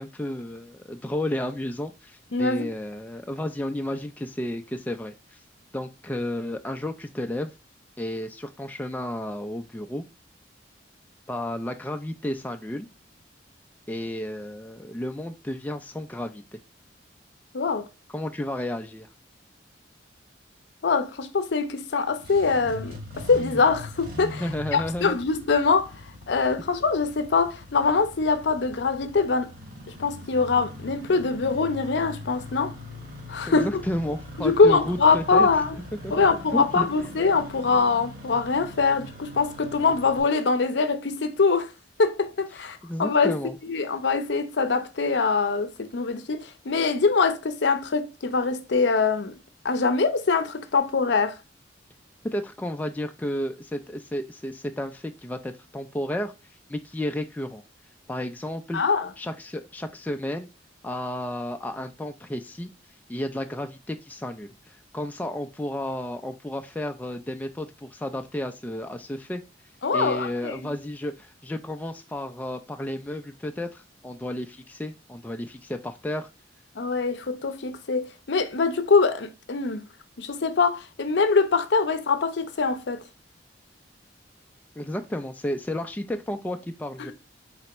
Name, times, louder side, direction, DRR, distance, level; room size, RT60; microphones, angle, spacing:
voice 1, 0.0-5.4 5.7-7.5 8.0-10.0 11.3-12.9 13.9-16.6 18.1-19.1 24.4-25.2 33.5-35.5 36.0-36.9 42.8-43.6 52.2-56.3 56.7-57.6 58.1-58.8 59.2-60.5 60.8-62.7 63.1-64.5 64.9-69.4 69.9-76.3 84.8-87.1, left 1 dB, 10° left, 0.3 m, -32 dB
voice 2, 2.3-2.7 17.5-17.9 20.8-23.0 23.3-25.9 26.3-29.5 30.0-32.7 33.3-33.7 34.4-35.8 36.1-41.7 42.0-43.3 43.6-49.4 49.6-51.4 58.7-59.1 69.8-70.7 76.8-79.8 80.2-83.0 87.0-87.1, left 4 dB, 65° left, 0.6 m, -23 dB
Engine starting, 22.1-40.2, left 1 dB, 50° right, 1.4 m, -41 dB
4.1 x 3.3 x 2.9 m
head